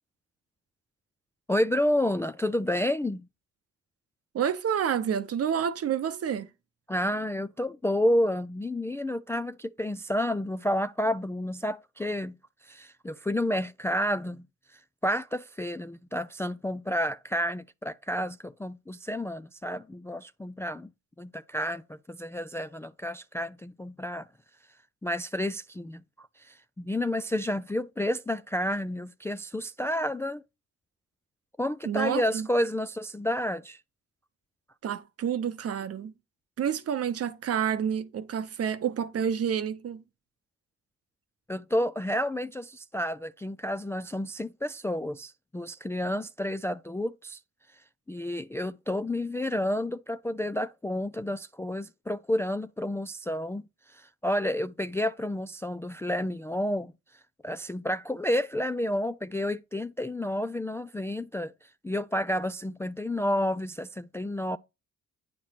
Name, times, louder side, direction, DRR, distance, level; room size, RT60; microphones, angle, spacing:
voice 1, 1.5-3.3 6.9-12.4 12.6-14.5 14.7-20.9 21.2-24.3 25.0-30.4 31.6-33.8 41.5-47.4 48.1-53.6 53.9-56.9 57.4-64.6, left 1 dB, 10° left, 0.3 m, -30 dB
voice 2, 4.3-6.5 31.8-32.5 34.8-36.1 36.6-40.0, right 8 dB, 50° right, 0.8 m, -29 dB
8.9 x 3.0 x 5.8 m
cardioid pair, 90°, 30 cm